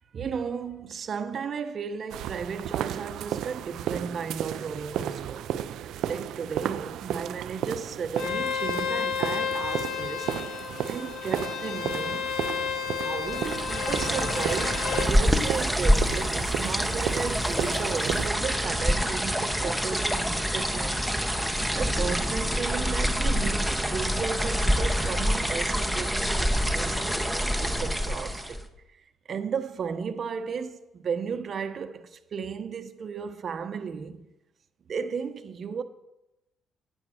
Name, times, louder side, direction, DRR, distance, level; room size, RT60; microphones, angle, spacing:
voice 1, 0.1-5.4 6.0-10.3 10.9-12.3 13.0-21.1 21.4-27.2 27.6-28.6 29.3-34.3 34.9-35.8, right 6 dB, 45° right, 0.8 m, -34 dB
sound 1, 2.1-18.3, right 10 dB, 75° right, 0.4 m, -34 dB
Bowed string instrument, 8.2-15.1, left 8 dB, 65° left, 0.9 m, -32 dB
sound 2, 13.3-28.7, equal, ahead, 0.9 m, -26 dB
8.9 x 8.7 x 6.4 m
cardioid pair, 105°, 0 cm